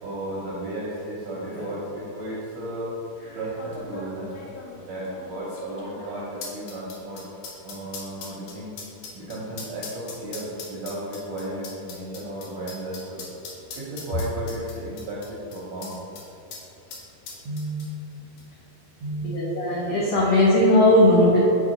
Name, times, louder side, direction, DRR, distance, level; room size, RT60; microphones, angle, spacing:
voice 1, 0.0-3.0 3.3-4.3 4.8-7.2 7.6-8.7 9.1-13.2 13.7-16.0 17.4-17.9 19.0-19.5, right 1 dB, 75° right, -6 dB, 1.6 m, -34 dB
sound 1, 1.0-1.1 1.3-1.7 2.5-2.6 3.6-16.2 16.5-16.6 16.9-18.1 18.4-18.5, left 4 dB, 70° left, 2.1 m, -40 dB
voice 2, 19.2-21.4, left 1 dB, 85° left, -6 dB, 1.4 m, -18 dB
5.5 x 4.3 x 5.0 m, 3.0 s
omnidirectional pair, 4.1 m